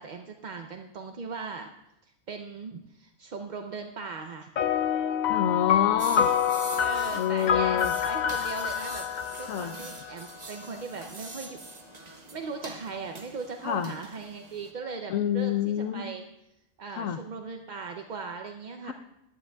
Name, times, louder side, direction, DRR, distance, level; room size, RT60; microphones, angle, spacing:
voice 1, 0.0-1.7 2.0-4.5 6.7-9.0 9.4-11.6 11.9-16.3 16.8-18.9, right 4 dB, 50° right, 4 dB, 0.6 m, -39 dB
sound 1, 4.6-10.3, left 9 dB, 65° left, 0.4 m, -27 dB
voice 2, 5.3-6.3 7.1-7.9 9.5-9.7 13.6-13.9 15.1-16.1 16.9-17.2 18.9-19.0, left 9 dB, 85° left, 9 dB, 1.1 m, -27 dB
sound 2, 6.0-14.7, right 3 dB, 35° right, 1.1 m, -44 dB
18.5 x 12.0 x 2.3 m, 0.88 s
omnidirectional pair, 1.3 m